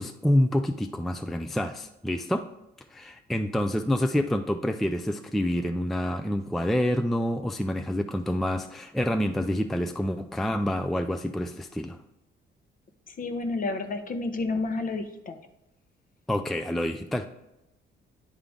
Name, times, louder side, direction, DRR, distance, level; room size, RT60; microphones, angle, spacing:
voice 1, 0.0-2.5 2.9-12.0 16.3-17.3, left 1 dB, ahead, 7 dB, 0.3 m, -27 dB
voice 2, 13.1-15.4, left 3 dB, 45° left, 7 dB, 0.8 m, -30 dB
9.8 x 3.7 x 3.6 m, 0.91 s
cardioid pair, 90°, 20 cm